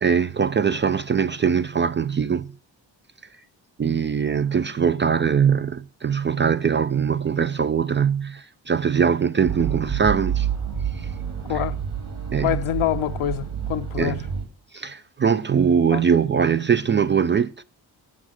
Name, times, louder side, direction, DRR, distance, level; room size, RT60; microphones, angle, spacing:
voice 1, 0.0-2.5 3.8-10.5 10.9-11.1 12.3-12.5 14.0-14.2 14.7-17.6, right 7 dB, 25° right, 0.3 m, -22 dB
sound 1, 9.5-14.4, right 8 dB, 55° right, 2.2 m, -28 dB
voice 2, 12.4-14.2 15.9-16.0, left 12 dB, 75° left, 0.8 m, -26 dB
7.7 x 6.1 x 6.1 m
supercardioid pair, 45°, 49 cm